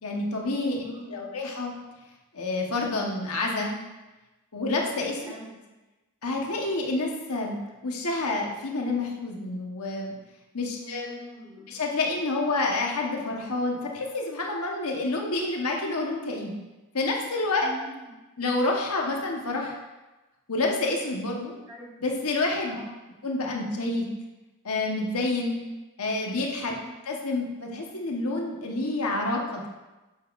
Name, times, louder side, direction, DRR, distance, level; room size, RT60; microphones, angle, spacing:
voice 1, 0.0-1.7 2.3-3.7 4.5-5.2 6.2-7.6 7.8-10.1 10.5-11.1 11.7-16.5 16.9-17.7 18.4-19.8 20.5-21.5 22.0-22.8 23.2-24.1 24.6-25.6 26.0-26.7 27.1-29.7, left 2 dB, 85° left, 0 dB, 1.2 m, -28 dB
voice 2, 0.8-1.3 5.2-5.6 10.8-11.7 17.6-18.1 21.6-21.9 22.7-22.9 26.5-26.8, right 1 dB, 20° right, -4 dB, 1.7 m, -43 dB
8.5 x 7.1 x 2.6 m, 1.1 s
head